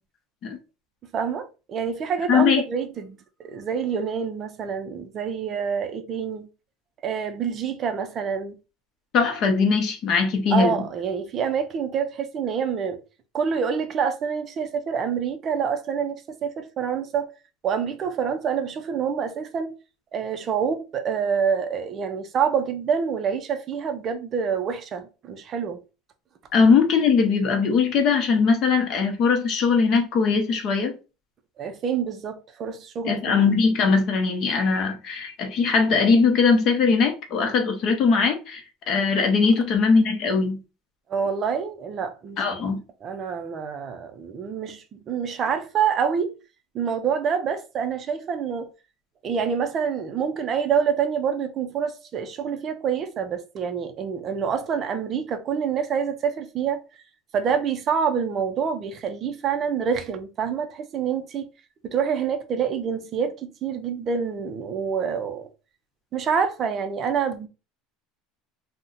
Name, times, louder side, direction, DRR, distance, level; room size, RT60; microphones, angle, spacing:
voice 1, 1.1-6.5 7.0-8.5 10.5-13.0 13.3-17.3 17.6-19.7 20.1-25.8 31.6-33.4 41.1-42.4 43.0-46.3 46.7-48.7 49.2-56.8 57.3-61.5 61.8-65.5 66.1-67.5, right 7 dB, 30° right, 0.4 m, -27 dB
voice 2, 2.3-2.6 9.1-10.8 26.5-30.9 33.1-38.6 38.9-40.6 42.4-42.8, left 5 dB, 45° left, 0.7 m, -20 dB
2.6 x 2.1 x 3.8 m
cardioid pair, 155°, 0 cm